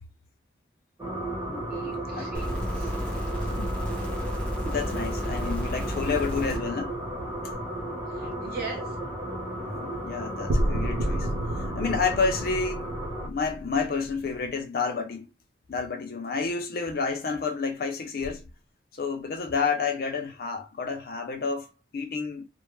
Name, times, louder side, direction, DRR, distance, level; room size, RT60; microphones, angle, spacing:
sound 1, 1.0-13.3, right 1 dB, 15° right, 0.8 m, -34 dB
voice 1, 1.2-2.3 3.6-3.7 4.6-7.0 9.5-11.3 11.8-12.9 13.2-15.3 15.7-18.4 18.9-22.4, left 5 dB, 55° left, 0.4 m, -30 dB
voice 2, 1.7-2.9 8.1-8.9, right 3 dB, 55° right, 0.9 m, -40 dB
sound 2, 2.3-6.6 7.5-7.6, equal, 5° left, 0.5 m, -32 dB
sound 3, 5.2-8.0 10.5-14.6, right 1 dB, 80° right, 0.4 m, -32 dB
2.2 x 2.0 x 3.0 m
head